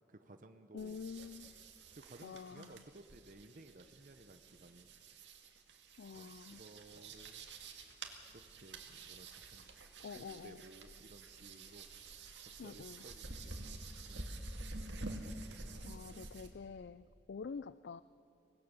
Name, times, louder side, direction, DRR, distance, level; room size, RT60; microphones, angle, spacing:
voice 1, 0.1-1.0 1.9-4.9 6.1-7.5 8.3-9.6 10.0-11.9 12.4-14.5, right 2 dB, 45° right, 7 dB, 0.8 m, -57 dB
voice 2, 0.7-1.5 2.2-2.8 6.0-6.6 10.0-10.6 12.6-13.0 15.8-18.0, left 5 dB, 70° left, 15 dB, 0.4 m, -47 dB
sound 1, 0.8-16.5, right 2 dB, 80° right, 2.0 m, -49 dB
24.5 x 18.5 x 6.9 m, 2.7 s
head